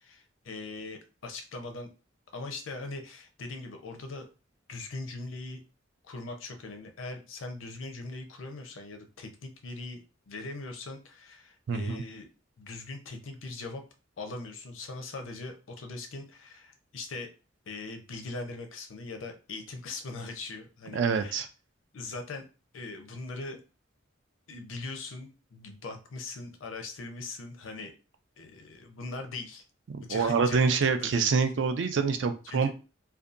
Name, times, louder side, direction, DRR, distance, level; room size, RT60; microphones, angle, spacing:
voice 1, 0.0-1.9 2.3-4.3 4.7-5.6 6.1-12.3 12.6-13.8 14.2-17.3 17.7-21.4 21.9-22.4 22.7-23.6 24.5-27.9 28.4-29.6 30.0-31.3 32.4-32.7, left 3 dB, 85° left, 5 dB, 0.6 m, -40 dB
voice 2, 11.7-12.0 20.9-21.5 29.9-32.7, right 5 dB, 65° right, 8 dB, 0.4 m, -26 dB
2.6 x 2.2 x 2.4 m, 0.32 s
head